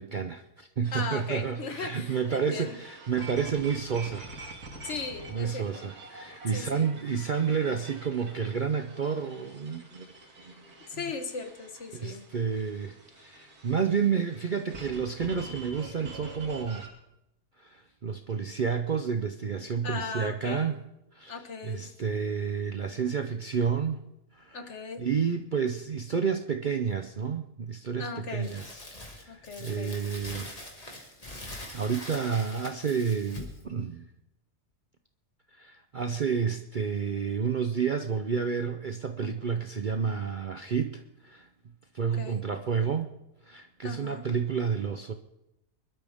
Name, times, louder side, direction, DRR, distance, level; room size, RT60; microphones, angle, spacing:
voice 1, 0.0-4.3 5.3-10.1 10.4-10.5 10.9-11.0 11.9-16.9 17.6-20.8 21.1-24.0 24.3-28.8 29.1-30.5 31.3-34.1 35.6-41.5 41.9-43.1 43.5-45.1, right 6 dB, 45° right, 6 dB, 0.6 m, -30 dB
sound 1, 0.8-16.9, right 2 dB, 90° right, 2.9 m, -47 dB
voice 2, 0.9-2.8 4.8-5.9 6.5-6.8 10.9-12.3 19.8-20.8 21.3-21.8 24.5-25.0 28.0-28.5 29.3-30.0 42.0-42.4 43.8-44.3, left 4 dB, 55° left, 7 dB, 1.5 m, -38 dB
Crumpling crinkling, 28.4-33.6, left 1 dB, 25° left, 2.2 m, -43 dB
24.0 x 12.0 x 3.5 m, 0.88 s
omnidirectional pair, 1.5 m